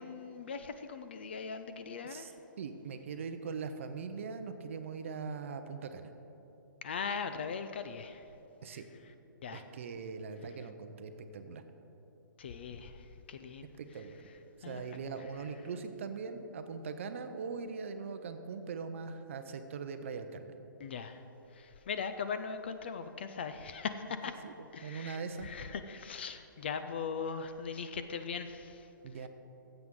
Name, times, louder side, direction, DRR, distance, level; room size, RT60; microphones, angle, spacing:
voice 1, 0.0-2.3 6.8-8.2 8.7-8.8 9.4-9.6 12.4-13.7 14.6-14.8 20.8-21.2 21.5-24.4 24.7-28.9, left 6 dB, 30° left, 9 dB, 0.3 m, -40 dB
voice 2, 2.6-6.1 8.6-8.8 9.5-11.6 13.8-14.2 14.6-20.5 24.4-24.5 24.8-25.5 29.0-29.3, right 5 dB, 35° right, 8 dB, 0.6 m, -41 dB
15.0 x 7.8 x 3.7 m, 3.0 s
hypercardioid pair, 170°, 11 cm